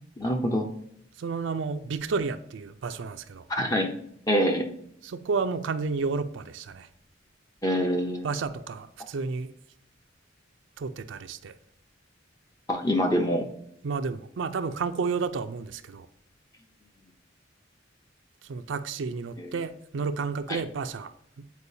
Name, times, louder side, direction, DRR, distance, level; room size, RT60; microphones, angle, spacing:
voice 1, 0.2-0.7 3.5-3.9 4.3-4.7 7.6-8.3 12.7-13.5 19.4-19.5 20.5-20.6, equal, 20° left, 0.6 m, -25 dB
voice 2, 1.2-3.5 5.0-6.9 8.2-9.5 10.8-11.6 13.8-16.1 18.4-21.1, right 4 dB, 70° right, 0.4 m, -31 dB
8.3 x 4.5 x 2.7 m
head